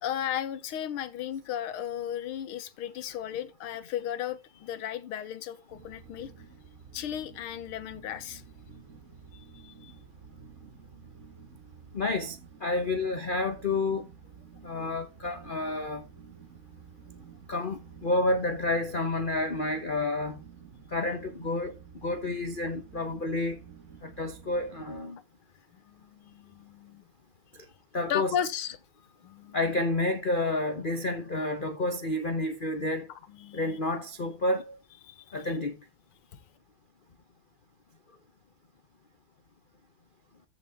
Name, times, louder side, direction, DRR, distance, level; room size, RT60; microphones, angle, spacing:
voice 1, 0.0-6.3 6.9-8.4 9.3-10.0 17.1-17.2 25.7-27.0 28.1-28.8 29.2-29.6 33.3-33.8 35.0-35.5 36.3-36.4, left 10 dB, 90° left, 1.9 m, -35 dB
sound 1, 5.7-25.0, right 7 dB, 40° right, 1.5 m, -51 dB
voice 2, 11.9-14.1 14.6-16.0 17.5-20.4 20.9-21.8 22.0-23.6 24.0-25.2 27.9-28.3 29.5-33.1 33.5-34.8 35.3-35.8, left 2 dB, 50° left, 0.6 m, -30 dB
14.5 x 5.6 x 3.5 m
omnidirectional pair, 2.3 m